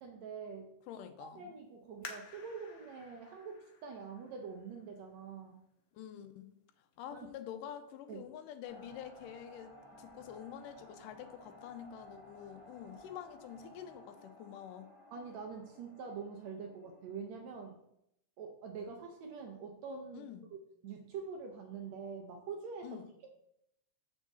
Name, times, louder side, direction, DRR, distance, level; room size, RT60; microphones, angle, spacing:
voice 1, 0.0-0.7 1.2-5.6 7.1-7.3 8.1-8.3 15.1-17.8 18.4-23.3, right 5 dB, 75° right, 3 dB, 1.7 m, -45 dB
voice 2, 0.9-1.5 5.9-6.5 7.0-14.9 20.1-20.5 22.8-23.1, left 9 dB, 80° left, 9 dB, 2.2 m, -47 dB
sound 1, 2.0-5.4 6.0-6.1 6.7-7.1 7.5-7.6, left 5 dB, 60° left, 1.8 m, -52 dB
sound 2, 8.6-17.7, left 1 dB, 15° left, 2.1 m, -57 dB
7.3 x 7.0 x 4.1 m, 0.77 s
omnidirectional pair, 3.8 m